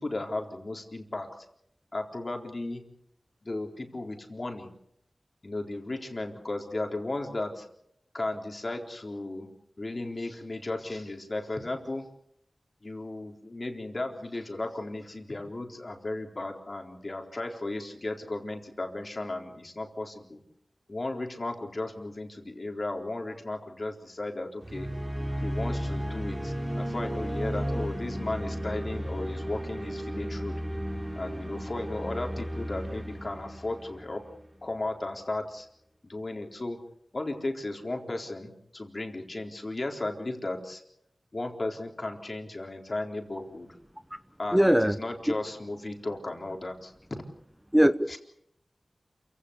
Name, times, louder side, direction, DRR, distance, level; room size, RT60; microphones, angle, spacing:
voice 1, 0.0-1.4 1.9-2.9 3.4-4.7 5.4-7.7 8.1-9.5 9.8-12.0 12.8-20.4 20.9-24.9 25.4-30.6 31.1-34.2 34.6-35.7 36.0-36.8 37.1-40.8 41.3-43.8 44.4-47.2 48.1-48.2, left 2 dB, 50° left, 3 dB, 4.0 m, -35 dB
sound 1, 24.6-34.7, equal, 30° right, 4.2 m, -34 dB
voice 2, 44.5-45.0 45.3-45.4 47.7-48.2, equal, 10° right, 12 dB, 0.9 m, -21 dB
28.0 x 17.0 x 8.2 m, 0.76 s
wide cardioid pair, 50°, 0 cm